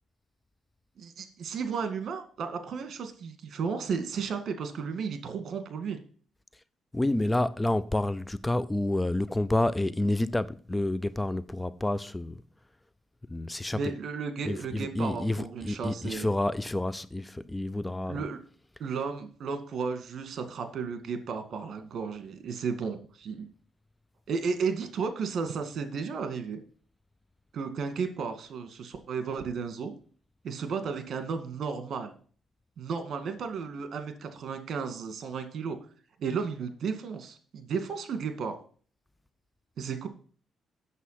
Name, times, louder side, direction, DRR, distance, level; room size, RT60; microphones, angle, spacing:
voice 1, 1.0-6.0 13.7-16.3 18.1-18.4 18.8-23.5 24.3-26.6 27.5-29.9 30.4-32.1 32.8-35.8 36.2-38.5 39.8-40.1, right 5 dB, 60° right, 2.2 m, -33 dB
voice 2, 6.9-12.3 13.3-13.8 14.5-18.2, left 1 dB, 10° left, 0.4 m, -29 dB
8.2 x 7.2 x 5.8 m
cardioid pair, 90°, 0 cm